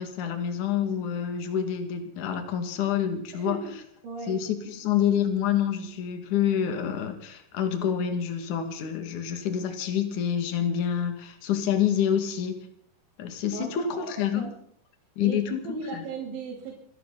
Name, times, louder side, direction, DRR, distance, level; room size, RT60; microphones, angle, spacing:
voice 1, 0.0-3.8 4.3-12.6 13.2-14.5 15.2-15.7 15.9-16.0, left 9 dB, 50° left, 7 dB, 3.3 m, -27 dB
voice 2, 3.3-3.7 4.0-4.4 13.5-14.1 14.4-14.6 15.2-16.7, right 3 dB, 85° right, -3 dB, 5.6 m, -36 dB
28.0 x 11.0 x 4.1 m, 0.65 s
omnidirectional pair, 5.1 m